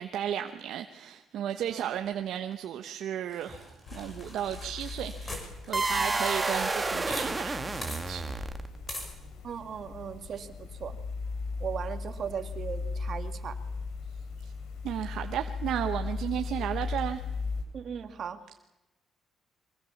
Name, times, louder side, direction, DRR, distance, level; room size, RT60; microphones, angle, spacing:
voice 1, 0.0-8.2 14.8-17.2, right 10 dB, 75° right, 1.1 m, -34 dB
sound 1, 3.3-7.3 7.5-7.6 7.8-8.0 8.9-9.1, left 1 dB, 25° left, 6.5 m, -42 dB
sound 2, 3.9-17.6, left 4 dB, 85° left, 3.4 m, -38 dB
sound 3, 5.7-8.9, right 3 dB, 20° right, 1.8 m, -30 dB
voice 2, 9.4-11.0 11.6-13.6 17.7-18.6, right 7 dB, 55° right, 2.1 m, -38 dB
24.0 x 21.0 x 7.3 m
cardioid pair, 90°, 0 cm